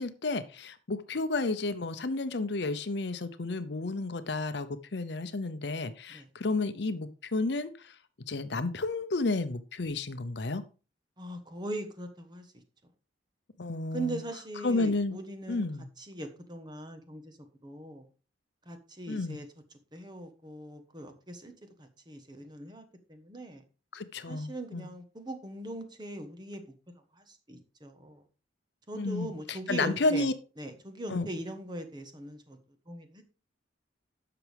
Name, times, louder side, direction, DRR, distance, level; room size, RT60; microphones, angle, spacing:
voice 1, 0.0-7.9 8.3-10.6 13.6-14.2 14.6-15.2 15.5-15.9 19.1-19.4 23.9-24.9 29.0-30.3 31.1-31.3, left 3 dB, 60° left, 0.7 m, -31 dB
voice 2, 11.2-12.5 13.9-15.7 16.0-17.4 17.6-18.1 18.6-19.5 19.9-23.6 24.3-26.6 26.9-28.2 28.9-30.3 30.6-32.6 32.9-33.2, right 1 dB, 25° right, 1.3 m, -40 dB
11.0 x 6.9 x 3.5 m
head